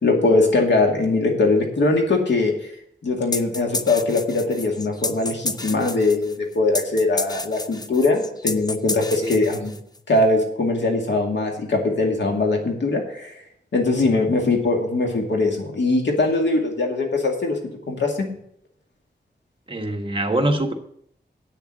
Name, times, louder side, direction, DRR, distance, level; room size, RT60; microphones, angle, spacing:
voice 1, 0.0-2.5 3.0-9.8 10.1-13.3 13.7-17.6 17.9-18.3, left 2 dB, 85° left, 1 dB, 2.4 m, -21 dB
sound 1, 3.3-10.0, left 2 dB, 20° left, 0.6 m, -30 dB
voice 2, 19.7-20.7, right 1 dB, 30° right, 4 dB, 1.4 m, -24 dB
8.8 x 7.0 x 7.8 m, 0.68 s
wide cardioid pair, 120°, 18 cm